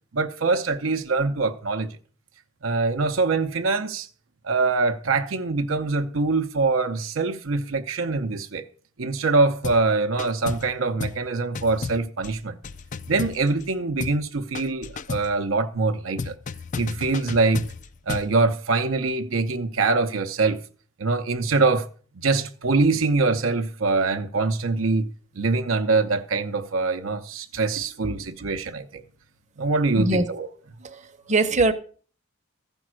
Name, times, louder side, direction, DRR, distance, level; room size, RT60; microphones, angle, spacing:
voice 1, 0.1-1.9 2.6-4.1 4.4-8.6 9.0-12.6 13.1-16.3 16.8-17.6 18.1-20.6 21.0-21.9 22.2-25.1 25.4-29.0 29.6-30.5, right 3 dB, 70° right, 0.7 m, -24 dB
sound 1, 9.6-9.9 10.2-10.7 11.0-11.3 11.5-13.7 14.0-14.3 14.5-15.3 16.2-18.3, left 4 dB, 35° left, 0.4 m, -33 dB
voice 2, 27.8-28.5 30.0-30.3 30.8-31.7, right 2 dB, 35° right, 0.8 m, -24 dB
14.5 x 5.4 x 6.2 m
head